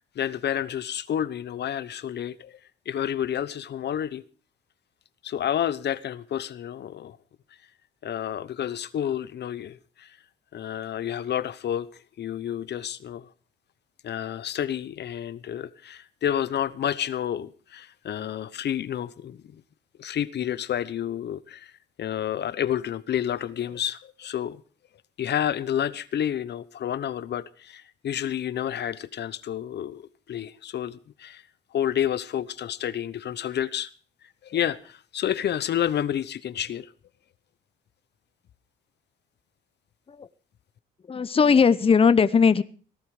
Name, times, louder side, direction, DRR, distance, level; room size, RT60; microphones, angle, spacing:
voice 1, 0.1-2.6 2.9-4.2 5.2-7.2 8.0-10.2 10.5-11.9 12.2-13.3 14.0-19.6 20.0-21.7 22.0-24.6 25.2-30.0 30.3-31.4 31.7-33.9 34.4-36.9, left 10 dB, 60° left, 0.9 m, -30 dB
voice 2, 41.1-42.6, left 5 dB, 30° left, 0.7 m, -19 dB
18.0 x 12.0 x 4.9 m
cardioid pair, 90°, 20 cm